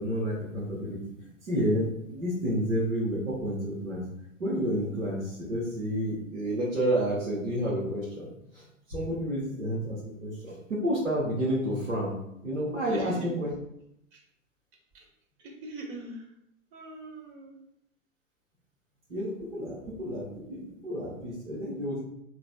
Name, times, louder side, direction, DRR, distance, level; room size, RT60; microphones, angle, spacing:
voice 1, 0.0-4.0 4.4-12.1 12.4-13.5 19.1-22.0, equal, 90° right, -7 dB, 1.1 m, -30 dB
voice 2, 12.9-13.3 14.1-14.2 14.9-15.1 15.4-16.3 16.7-17.6, right 2 dB, 45° right, 1 dB, 1.0 m, -42 dB
4.1 x 3.0 x 2.3 m, 0.77 s
figure-of-eight pair, 100°, 39 cm